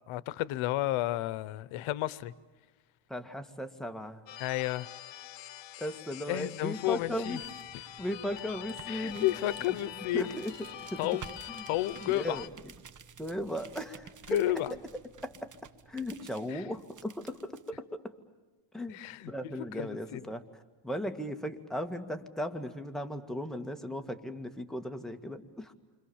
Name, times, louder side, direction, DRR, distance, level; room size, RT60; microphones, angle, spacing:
voice 1, 0.1-2.3 4.4-4.9 6.3-7.4 8.9-10.4 11.0-11.2 11.7-12.4 14.3-14.7 16.5-16.6 18.9-20.3, left 15 dB, 85° left, 0.9 m, -32 dB
voice 2, 3.1-4.2 5.8-7.4 8.0-9.3 10.1-10.5 10.9-11.1 11.5-11.6 12.0-12.5 13.2-14.5 15.2-15.5 15.9-18.1 18.7-19.0 19.3-20.4 20.8-25.7, equal, ahead, 2.0 m, -37 dB
sound 1, 4.3-12.5, left 12 dB, 65° left, 1.3 m, -45 dB
sound 2, 6.8-17.7, right 7 dB, 40° right, 1.6 m, -52 dB
28.5 x 26.0 x 7.2 m
cardioid pair, 105°, 47 cm